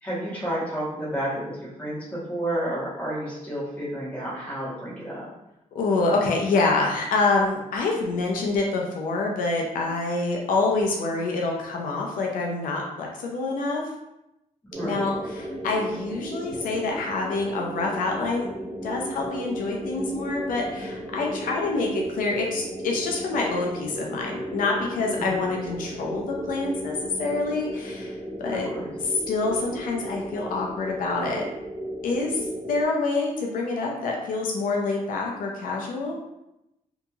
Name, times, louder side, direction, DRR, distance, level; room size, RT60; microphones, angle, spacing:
voice 1, 0.0-5.3 14.6-15.1 25.2-25.3 28.5-28.9, right 1 dB, 10° left, -9 dB, 1.1 m, -31 dB
voice 2, 5.7-13.8 14.8-18.5 18.8-28.7 29.3-31.4 32.0-36.2, left 3 dB, 85° left, 0 dB, 0.5 m, -26 dB
sound 1, 14.7-32.9, right 1 dB, 20° right, 0.3 m, -35 dB
2.8 x 2.7 x 2.3 m, 0.89 s
wide cardioid pair, 170°, 14 cm